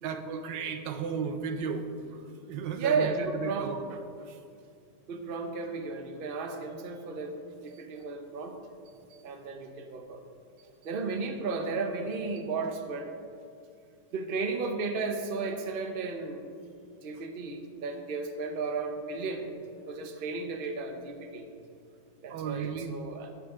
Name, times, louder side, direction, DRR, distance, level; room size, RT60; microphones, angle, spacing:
voice 1, 0.0-4.4 7.7-8.1 9.1-9.2 10.6-10.7 22.3-22.9, right 6 dB, 90° right, 8 dB, 1.4 m, -35 dB
voice 2, 2.8-3.7 5.1-8.6 9.2-10.2 10.8-13.1 14.1-16.4 17.0-19.5 19.9-21.5 22.2-23.3, right 4 dB, 40° right, 5 dB, 0.9 m, -34 dB
13.0 x 8.8 x 3.8 m, 2.4 s
omnidirectional pair, 1.9 m